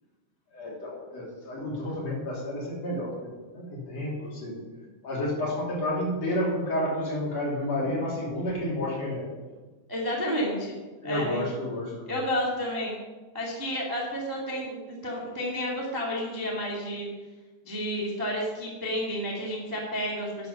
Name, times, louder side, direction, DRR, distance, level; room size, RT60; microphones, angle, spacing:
voice 1, 0.5-4.6 5.0-9.3 11.0-12.1, left 1 dB, 40° left, -4 dB, 3.8 m, -30 dB
voice 2, 9.9-10.8 11.0-11.4 12.1-13.0 13.3-17.1 17.6-20.5, equal, 15° right, -4 dB, 0.7 m, -31 dB
11.0 x 8.4 x 5.6 m, 1.3 s
omnidirectional pair, 4.7 m